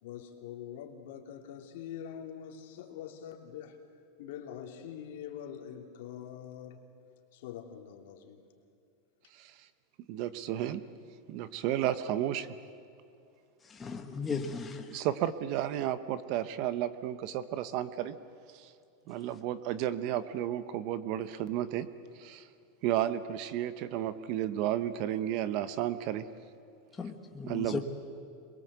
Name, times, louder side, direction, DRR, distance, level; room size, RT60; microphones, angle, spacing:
voice 1, 0.0-3.8 4.2-6.8 7.3-8.4, left 9 dB, 65° left, 3.0 m, -44 dB
voice 2, 10.1-10.8 11.3-12.5 14.9-18.2 18.5-18.7 19.1-21.9 22.2-22.5 22.8-26.2 27.5-27.8, right 12 dB, 45° right, 1.0 m, -32 dB
voice 3, 13.7-15.1 27.0-27.8, left 5 dB, 15° left, 1.4 m, -36 dB
27.0 x 21.5 x 8.2 m
supercardioid pair, 165°, 0 cm